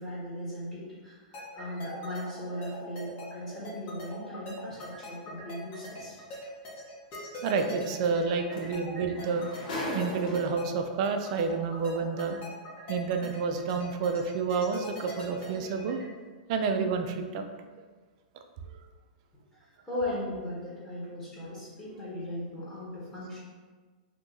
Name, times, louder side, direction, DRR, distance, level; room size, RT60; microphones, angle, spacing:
voice 1, 0.0-6.2 8.9-9.0 19.8-23.4, left 1 dB, 15° left, -10 dB, 1.2 m, -38 dB
sound 1, 1.3-16.0, left 1 dB, 35° left, 1.1 m, -42 dB
sound 2, 6.3-6.5 8.2-8.3 8.5-10.8 11.7-11.8, left 1 dB, 65° left, 0.9 m, -37 dB
voice 2, 7.4-9.5 9.9-12.4 12.9-16.0 16.5-17.5 18.7-18.8, right 5 dB, 50° right, 6 dB, 0.4 m, -29 dB
2.8 x 2.5 x 3.7 m, 1.4 s
hypercardioid pair, 130°, 5 cm